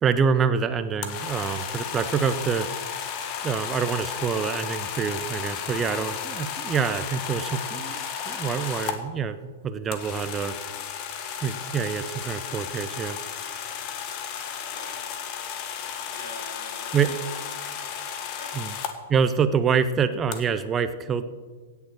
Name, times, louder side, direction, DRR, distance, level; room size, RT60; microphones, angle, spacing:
voice 1, 0.0-2.7 3.4-10.5 11.4-13.2 16.9-17.1 18.6-18.7 19.1-21.2, right 6 dB, 20° right, 11 dB, 0.6 m, -26 dB
sound 1, 1.0-9.0 9.9-18.9 20.3-20.4, left 8 dB, 35° left, 1.5 m, -34 dB
Rattle, 2.4-2.7 4.1-4.4 5.6-5.9 7.2-7.6 8.5-8.9 10.0-10.5 10.7-10.8 11.5-11.8 13.0-13.5 14.4-14.8 15.8-16.1 17.3-17.6, left 1 dB, 15° left, 4.7 m, -52 dB
voice 2, 14.7-15.1 16.1-17.7 18.3-18.6, left 1 dB, 60° left, -1 dB, 4.6 m, -44 dB
16.5 x 7.0 x 6.5 m, 1.5 s
figure-of-eight pair, 105°, 0 cm